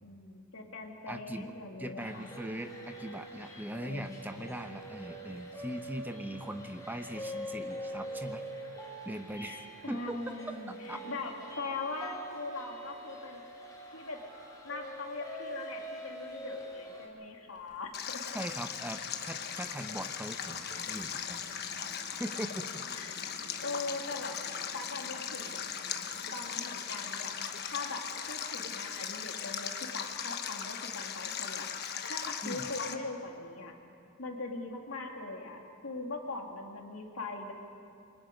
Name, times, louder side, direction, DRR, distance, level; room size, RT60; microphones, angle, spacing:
voice 1, 0.0-2.3 3.7-4.5 9.4-13.4 13.9-14.2 14.6-18.2 22.9-25.6 26.3-27.3 27.6-33.7 34.2-37.5, left 3 dB, 75° left, 1 dB, 2.6 m, -41 dB
voice 2, 1.1-1.5 1.8-8.4 9.0-10.2 10.7-11.0 18.3-21.5 22.2-22.8 32.4-32.7, right 1 dB, 10° right, 7 dB, 1.0 m, -40 dB
sound 1, 2.0-17.1, right 1 dB, 15° left, 3.5 m, -44 dB
sound 2, 17.6-28.6, right 1 dB, 55° right, 3.2 m, -56 dB
Stream, 17.9-32.9, left 8 dB, 50° left, 1.2 m, -38 dB
28.0 x 23.5 x 5.3 m, 2.7 s
head